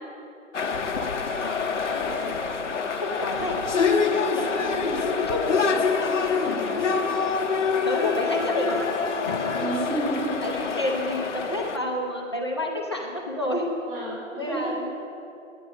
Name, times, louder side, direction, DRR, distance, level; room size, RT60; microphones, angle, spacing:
sound 1, 0.5-11.8, left 5 dB, 60° left, 0.9 m, -26 dB
voice 1, 1.9-3.6 4.0-5.6 6.3-7.6 7.8-8.9 9.2-9.6 10.4-13.7 13.9-14.0 14.3-14.9, left 1 dB, 20° left, -1 dB, 0.6 m, -31 dB
voice 2, 9.5-10.4 13.9-14.7, right 2 dB, 40° right, -8 dB, 3.1 m, -31 dB
10.0 x 9.6 x 5.5 m, 2.8 s
hypercardioid pair, 170°, 40 cm